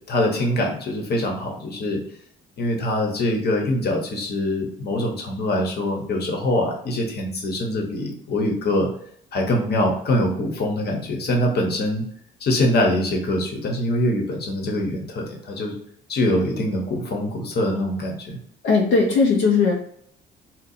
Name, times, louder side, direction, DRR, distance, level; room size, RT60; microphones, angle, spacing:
voice 1, 0.1-2.0 2.6-8.9 9.3-12.0 12.4-15.8 16.1-18.4, left 1 dB, 55° left, 1 dB, 1.0 m, -23 dB
voice 2, 18.6-19.7, left 4 dB, 85° left, -2 dB, 0.6 m, -18 dB
2.7 x 2.1 x 4.1 m, 0.66 s
cardioid pair, 90°, 20 cm